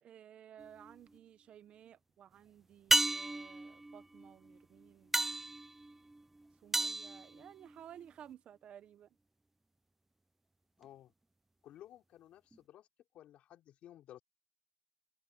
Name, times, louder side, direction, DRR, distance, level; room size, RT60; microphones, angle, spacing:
voice 1, 0.0-5.2 6.6-9.1, right 10 dB, 55° right, 1.0 m, -55 dB
sound 1, 0.6-1.2 2.9-8.1 12.5-12.6, right 2 dB, 10° right, 0.5 m, -35 dB
voice 2, 10.8-11.1 11.6-12.9 13.1-14.2, left 12 dB, 70° left, 4.9 m, -55 dB
cardioid pair, 120°, 2 cm